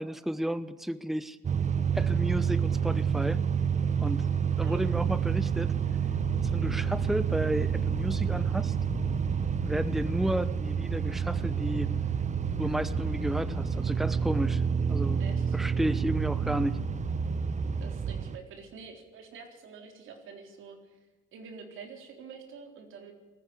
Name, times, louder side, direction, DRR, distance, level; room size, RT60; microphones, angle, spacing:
voice 1, 0.0-1.4 1.9-3.5 4.0-4.3 4.6-5.8 6.5-8.8 9.6-11.9 12.6-14.6 14.9-15.2 15.5-16.8, right 1 dB, ahead, 13 dB, 0.9 m, -32 dB
sound 1, 1.4-18.4, right 7 dB, 35° right, 0.9 m, -29 dB
sound 2, 5.8-17.9, left 9 dB, 65° left, 1.8 m, -43 dB
voice 2, 15.2-15.6 17.8-21.0 21.3-23.1, right 5 dB, 85° right, 4 dB, 4.0 m, -47 dB
19.0 x 14.5 x 9.9 m, 1.2 s
cardioid pair, 90°, 20 cm